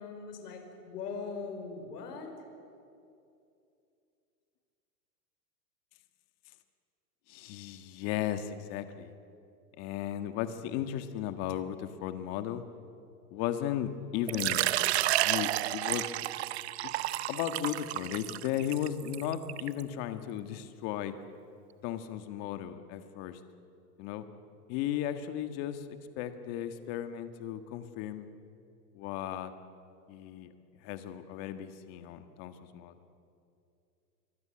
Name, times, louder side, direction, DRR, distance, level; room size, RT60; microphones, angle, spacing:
voice 1, 0.0-2.3, left 5 dB, 70° left, 4 dB, 5.2 m, -40 dB
voice 2, 7.3-9.1 9.8-12.6 13.3-14.7 15.2-16.1 16.8-16.9 17.3-21.1 21.8-23.4 24.0-24.3 24.7-25.8 26.2-28.3 28.9-29.5 30.1-30.5 30.8-32.9, left 11 dB, 30° left, 9 dB, 1.6 m, -35 dB
Water / Liquid, 14.3-19.8, right 15 dB, 45° right, 0.6 m, -31 dB
26.5 x 23.5 x 8.8 m, 2.6 s
supercardioid pair, 155°, 48 cm